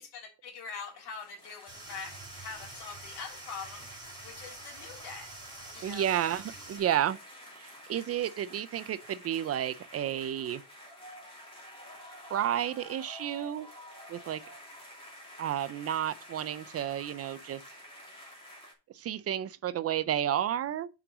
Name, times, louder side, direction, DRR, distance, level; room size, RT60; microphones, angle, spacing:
voice 1, 0.0-3.9 4.2-5.3 5.7-6.1, left 5 dB, 85° left, 3.3 m, -43 dB
sound 1, 0.9-18.7, equal, 15° left, 2.6 m, -50 dB
sound 2, 1.7-6.8, right 3 dB, 10° right, 2.1 m, -48 dB
voice 2, 5.8-7.2 7.6-10.6 12.3-13.7 14.1-14.4 15.4-17.6 18.9-20.9, right 10 dB, 40° right, 0.4 m, -31 dB
5.8 x 5.4 x 6.0 m
cardioid pair, 165°, 39 cm